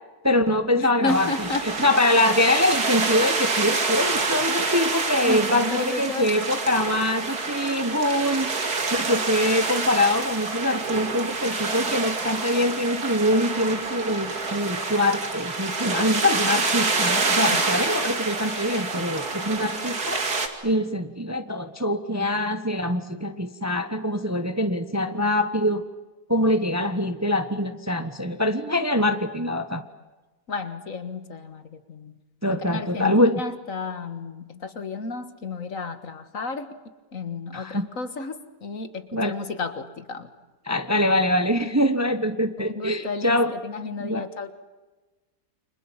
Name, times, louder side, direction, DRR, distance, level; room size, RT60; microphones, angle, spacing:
voice 1, 0.2-1.3 1.6-20.2 20.6-25.8 26.3-29.8 32.4-33.4 37.5-37.8 39.1-39.3 40.7-43.5 44.0-44.2, left 1 dB, 10° right, 9 dB, 1.1 m, -24 dB
voice 2, 0.8-1.7 5.2-6.5 17.5-17.6 30.5-32.1 32.5-36.7 37.1-40.3 42.6-44.5, left 3 dB, 60° left, 10 dB, 2.0 m, -32 dB
sound 1, 1.1-20.5, right 3 dB, 80° right, 3.1 m, -27 dB
29.5 x 26.0 x 7.3 m, 1.2 s
omnidirectional pair, 1.6 m